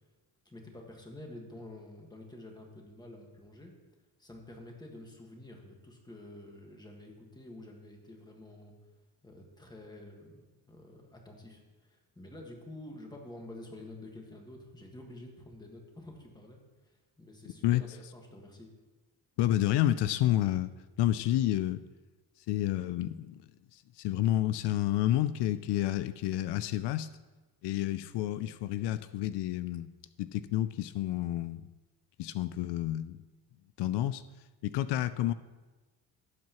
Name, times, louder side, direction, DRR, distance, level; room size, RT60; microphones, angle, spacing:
voice 1, 0.4-3.7 4.2-8.7 9.2-18.7, left 1 dB, 10° left, 1 dB, 1.6 m, -49 dB
voice 2, 19.4-20.7 21.0-21.8 22.5-23.5 23.7-27.1 27.6-29.9 30.2-31.7 32.2-33.2 33.8-34.2 34.6-35.3, left 13 dB, 85° left, 13 dB, 0.5 m, -29 dB
17.5 x 7.6 x 3.0 m, 1.2 s
cardioid pair, 150°, 40 cm